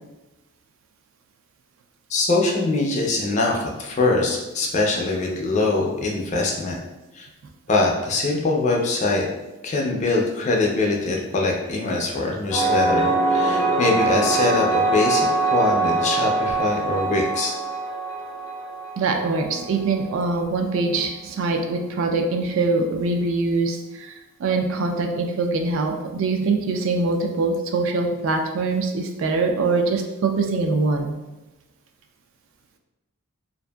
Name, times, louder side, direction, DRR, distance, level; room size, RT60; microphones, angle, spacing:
voice 1, 2.1-6.8 7.2-7.3 7.7-9.3 9.6-17.5, left 2 dB, 35° left, 0 dB, 0.3 m, -23 dB
sound 1, 12.5-20.0, right 2 dB, 90° left, 0.6 m, -23 dB
voice 2, 19.0-24.1 24.4-31.1, right 3 dB, 65° right, 3 dB, 0.3 m, -23 dB
2.6 x 2.4 x 2.2 m, 1.1 s
head